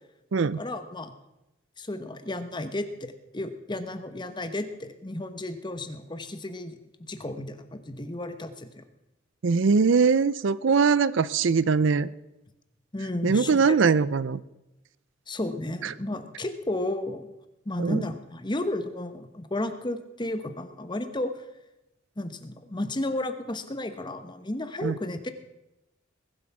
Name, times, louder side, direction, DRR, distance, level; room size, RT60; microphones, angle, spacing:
voice 1, 0.6-1.1 1.8-6.8 7.1-8.8 12.9-13.8 15.3-17.3 17.6-21.3 22.2-25.3, left 1 dB, 20° left, 9 dB, 1.1 m, -33 dB
voice 2, 9.4-12.1 13.2-14.4 15.8-15.9 17.8-18.1 24.8-24.9, right 5 dB, 65° right, 18 dB, 0.5 m, -22 dB
21.0 x 8.0 x 5.9 m, 0.94 s
head